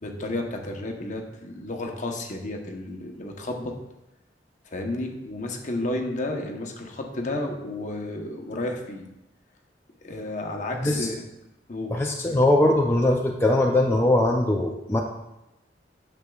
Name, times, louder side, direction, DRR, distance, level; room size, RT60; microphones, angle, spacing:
voice 1, 0.0-3.7 4.7-9.0 10.0-11.3 11.7-12.4, left 2 dB, 45° left, 2 dB, 0.9 m, -32 dB
voice 2, 11.9-15.0, left 1 dB, 15° left, 0 dB, 0.4 m, -21 dB
9.4 x 6.9 x 2.3 m, 0.92 s
head